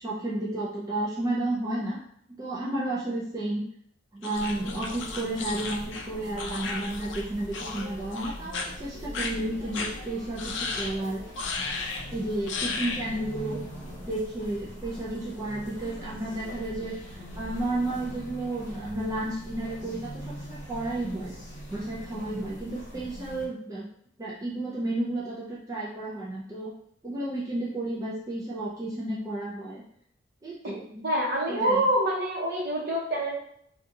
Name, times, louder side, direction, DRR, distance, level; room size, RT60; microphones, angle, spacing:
voice 1, 0.0-2.0 2.4-3.7 4.1-11.2 12.1-13.6 14.0-21.4 21.7-23.9 24.2-26.7 27.0-29.8 30.4-31.0 31.5-31.9, right 1 dB, 15° right, -7 dB, 0.4 m, -32 dB
sound 1, 4.2-7.2 7.5-7.9 8.1-8.7 9.1-9.3 9.7-9.9 10.4-10.9 11.4-12.0 12.5-13.1, left 4 dB, 60° left, 0.4 m, -34 dB
sound 2, 4.3-23.5, equal, 35° left, 1.0 m, -42 dB
voice 2, 31.0-33.4, right 1 dB, 50° right, -3 dB, 0.9 m, -26 dB
2.8 x 2.3 x 3.6 m, 0.69 s
head